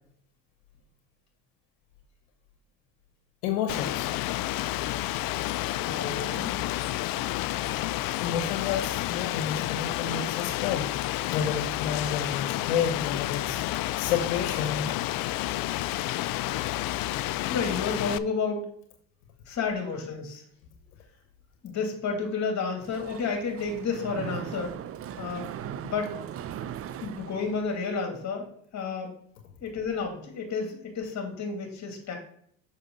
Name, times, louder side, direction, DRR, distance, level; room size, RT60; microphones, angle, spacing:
voice 1, 3.4-4.1 8.2-10.9 11.3-14.9, left 7 dB, 85° left, 5 dB, 1.0 m, -30 dB
Rain, 3.7-18.2, left 16 dB, 55° left, 0.5 m, -30 dB
voice 2, 5.8-6.6 17.5-18.7 19.5-20.4 21.6-24.8 25.2-25.5 25.8-26.2 27.0-28.5 28.7-29.1 29.6-32.2, left 5 dB, 40° left, 3 dB, 2.6 m, -31 dB
Mechanisms, 22.8-28.0, right 10 dB, 35° right, 0.5 m, -39 dB
6.6 x 5.7 x 3.8 m, 0.65 s
supercardioid pair, 85°, 41 cm